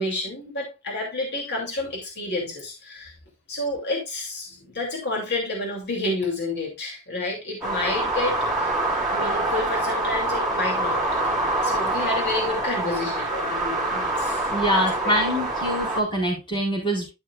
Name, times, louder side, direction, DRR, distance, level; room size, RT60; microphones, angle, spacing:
voice 1, 0.0-3.1 3.5-8.8 9.1-11.0 11.6-15.5, left 2 dB, 50° left, -1 dB, 2.8 m, -30 dB
sound 1, 7.6-16.0, right 2 dB, ahead, 3.7 m, -25 dB
voice 2, 14.5-17.1, equal, 20° left, -2 dB, 4.4 m, -24 dB
12.5 x 6.3 x 2.4 m, 0.25 s
head